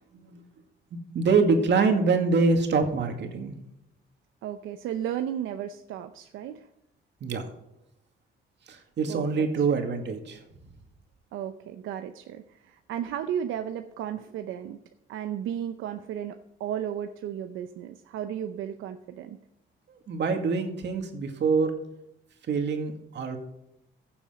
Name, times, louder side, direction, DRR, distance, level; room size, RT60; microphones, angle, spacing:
voice 1, 1.1-3.5 7.2-7.5 8.7-10.4 20.1-21.7 22.5-23.4, right 4 dB, 60° right, 5 dB, 2.2 m, -25 dB
voice 2, 4.4-6.7 9.1-9.8 11.3-14.8 15.1-19.4, right 10 dB, 90° right, 8 dB, 0.7 m, -34 dB
15.5 x 7.1 x 5.2 m, 0.86 s
cardioid pair, 90°, 20 cm